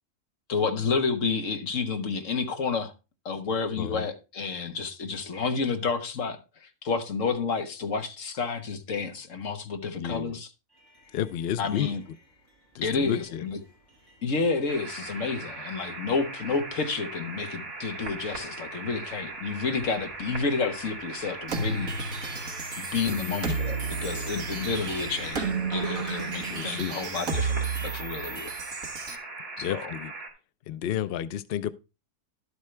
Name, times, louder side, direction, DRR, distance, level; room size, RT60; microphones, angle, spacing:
voice 1, 0.5-2.9 3.2-10.5 11.6-12.0 12.8-13.6 14.2-21.9 22.8-28.5 29.7-29.8, left 4 dB, 55° left, 1.6 m, -30 dB
voice 2, 10.0-10.4 11.1-11.9 12.7-13.4 23.1-23.4 26.5-27.0 29.6-30.1 30.7-31.7, left 10 dB, 75° left, 0.5 m, -31 dB
sound 1, 10.7-25.3, left 1 dB, 15° right, 6.7 m, -56 dB
sound 2, 14.7-30.3, right 3 dB, 75° right, 3.3 m, -39 dB
sound 3, 21.5-29.2, right 4 dB, 60° right, 1.8 m, -32 dB
12.0 x 8.0 x 3.3 m
omnidirectional pair, 1.7 m